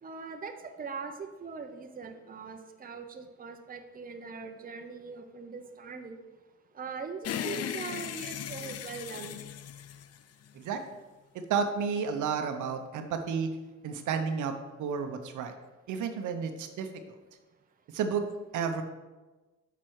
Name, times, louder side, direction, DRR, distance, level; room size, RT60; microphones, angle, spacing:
voice 1, 0.0-6.2 6.7-9.4, right 5 dB, 30° right, 6 dB, 0.8 m, -41 dB
sound 1, 7.2-10.7, left 9 dB, 55° left, 0.5 m, -37 dB
voice 2, 11.3-13.5 13.8-15.5 15.9-16.9 17.9-18.3 18.5-18.8, right 6 dB, 80° right, 7 dB, 0.8 m, -31 dB
7.6 x 6.0 x 4.7 m, 1.2 s
cardioid pair, 90°, 30 cm